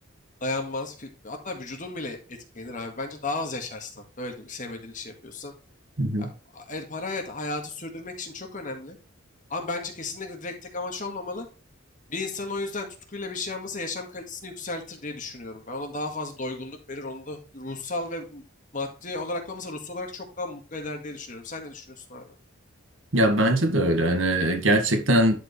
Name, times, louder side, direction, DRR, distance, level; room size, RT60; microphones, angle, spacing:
voice 1, 0.4-5.5 6.2-9.0 9.5-11.5 12.1-18.4 18.7-22.3, left 2 dB, 40° left, 1.9 m, -34 dB
voice 2, 6.0-6.3 23.1-25.4, right 1 dB, 75° right, 1.8 m, -21 dB
11.0 x 4.9 x 3.3 m
head